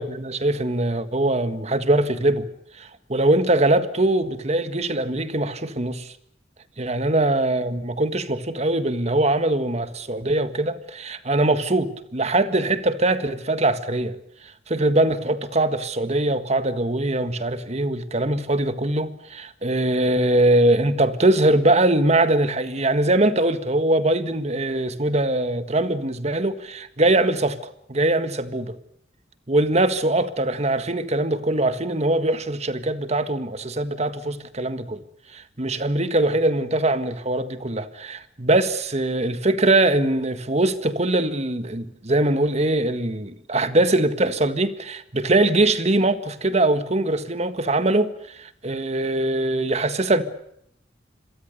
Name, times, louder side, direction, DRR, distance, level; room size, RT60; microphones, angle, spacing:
voice 1, 0.0-2.5 2.8-6.1 6.8-14.2 14.7-27.6 27.9-28.8 29.5-35.0 35.3-50.2, right 2 dB, 40° right, 1.7 m, -22 dB
27.5 x 23.0 x 6.7 m
head